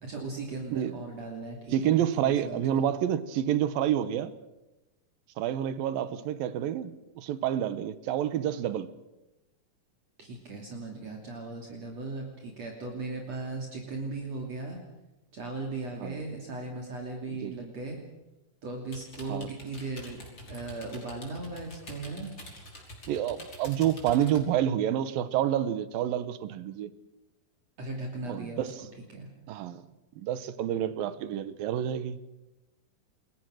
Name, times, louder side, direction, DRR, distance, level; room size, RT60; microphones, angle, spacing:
voice 1, 0.0-2.8 10.2-14.8 15.3-18.0 18.6-22.3 27.8-28.7 29.1-29.3, right 3 dB, 50° right, 3.9 m, -38 dB
voice 2, 1.7-4.3 5.4-8.9 16.0-16.2 17.4-17.5 19.3-19.5 23.1-26.9 28.3-28.7 29.5-29.8 30.2-32.2, right 10 dB, 85° right, 2.9 m, -28 dB
sound 1, 18.9-24.4, left 1 dB, 30° left, 5.8 m, -46 dB
28.5 x 22.0 x 6.5 m
omnidirectional pair, 3.9 m